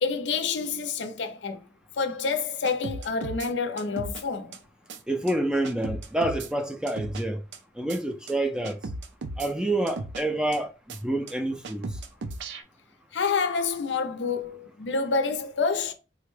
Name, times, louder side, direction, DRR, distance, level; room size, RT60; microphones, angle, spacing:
voice 1, 0.0-1.7 2.0-4.6 13.1-15.9, left 5 dB, 85° left, 0.5 m, -28 dB
sound 1, 2.6-3.5 3.8-4.2 4.5-4.6 4.9-5.0 5.3-5.4 5.6-6.5 6.9-7.2 7.5-7.6 7.9-8.0 8.3-8.4 8.6-9.5 9.9-10.2 10.5-10.6 10.9-11.0 11.3-11.4 11.6-12.6, right 3 dB, 85° right, 0.4 m, -36 dB
voice 2, 5.1-7.4 7.8-8.8 9.4-11.8, right 1 dB, 5° right, 0.3 m, -28 dB
3.6 x 2.1 x 3.1 m
head